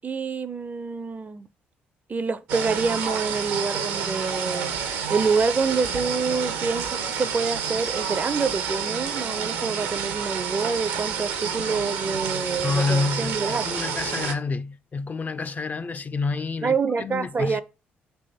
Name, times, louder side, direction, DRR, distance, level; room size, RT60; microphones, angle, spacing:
voice 1, 0.0-1.5 2.1-4.7 5.1-13.7 16.6-17.6, right 4 dB, 30° right, 0.4 m, -27 dB
sound 1, 2.5-14.3, right 7 dB, 75° right, 0.7 m, -29 dB
voice 2, 12.6-17.6, left 4 dB, 30° left, 0.4 m, -28 dB
3.4 x 3.0 x 4.1 m
figure-of-eight pair, 45°, 5 cm